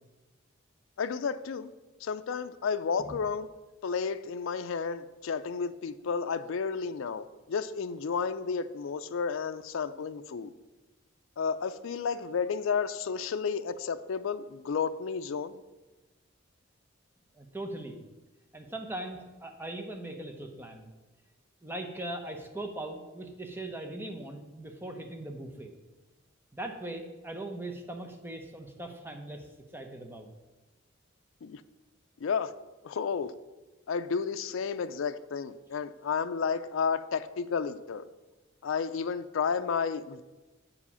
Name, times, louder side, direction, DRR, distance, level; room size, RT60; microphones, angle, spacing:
voice 1, 1.0-1.7 2.0-3.5 3.8-10.5 11.4-15.6 31.4-31.6 32.2-32.5 32.8-33.3 33.9-38.0 38.6-40.2, left 6 dB, 70° left, 0.4 m, -32 dB
voice 2, 17.3-18.0 18.5-20.9 21.6-25.7 26.5-29.5 29.7-30.3, right 1 dB, 10° right, 0.8 m, -40 dB
8.4 x 4.9 x 5.5 m
head